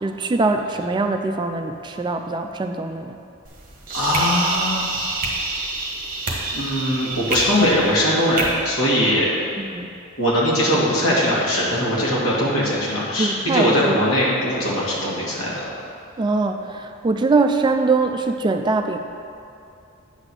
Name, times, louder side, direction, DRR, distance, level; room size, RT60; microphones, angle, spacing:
voice 1, 0.0-3.2 9.6-9.9 13.2-14.0 16.2-19.0, right 3 dB, 20° right, 6 dB, 0.3 m, -22 dB
sound 1, 3.4-8.5, right 3 dB, 40° right, 1.3 m, -27 dB
voice 2, 3.9-4.9 6.5-9.3 10.2-15.6, equal, 80° left, -6 dB, 2.1 m, -20 dB
8.7 x 4.2 x 6.2 m, 2.5 s
head